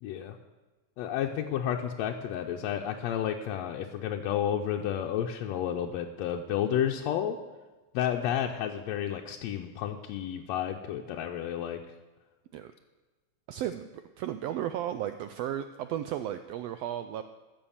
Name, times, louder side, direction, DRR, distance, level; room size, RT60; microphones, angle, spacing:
voice 1, 0.0-0.4 1.0-7.4 7.9-11.8, left 10 dB, 75° left, 2 dB, 1.7 m, -31 dB
voice 2, 13.5-17.2, right 11 dB, 85° right, 10 dB, 1.4 m, -34 dB
14.0 x 6.9 x 7.2 m, 1.2 s
omnidirectional pair, 3.4 m